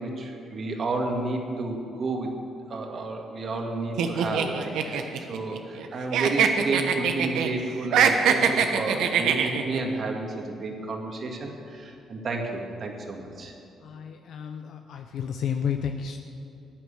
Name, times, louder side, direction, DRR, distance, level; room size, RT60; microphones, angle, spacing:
voice 1, 0.0-2.3 2.7-13.5, right 3 dB, 50° right, 2 dB, 2.2 m, -31 dB
sound 1, 4.0-5.9 6.1-7.5 7.8-9.8, right 7 dB, 85° right, 1.0 m, -23 dB
voice 2, 13.8-16.2, left 7 dB, 70° left, 5 dB, 0.7 m, -31 dB
15.0 x 9.4 x 6.6 m, 2.8 s
cardioid pair, 90°, 0 cm